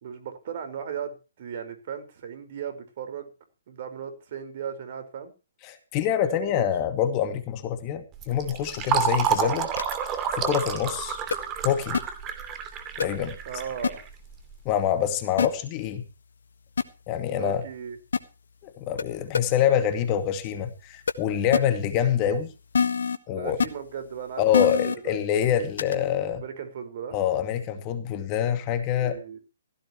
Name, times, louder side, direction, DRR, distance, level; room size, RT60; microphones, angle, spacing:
voice 1, 0.0-3.3 3.7-5.3 6.5-6.6 13.4-14.0 17.2-18.0 23.3-24.4 24.8-25.2 26.3-27.2 29.0-29.4, right 8 dB, 50° right, 9 dB, 4.8 m, -36 dB
voice 2, 5.6-9.7 10.3-11.2 11.6-12.0 13.0-13.4 14.6-16.0 17.1-17.6 18.6-22.5 23.3-23.6 24.4-26.4 27.1-29.2, left 9 dB, 30° left, 8 dB, 2.3 m, -25 dB
Fill (with liquid), 8.2-14.6, right 8 dB, 25° right, 2.8 m, -29 dB
sound 1, 9.8-9.9 11.3-11.4 11.9-12.0 13.0-13.1 13.8-13.9 15.4-15.5 16.8-16.9 18.1-18.2 19.0-19.1 19.3-19.4 21.1-21.2 21.5-21.6 22.7-23.2 23.6-23.7 24.5-24.9 25.8-25.9, left 6 dB, 70° left, 1.5 m, -23 dB
16.5 x 16.0 x 3.1 m, 0.32 s
hypercardioid pair, 135°, 0 cm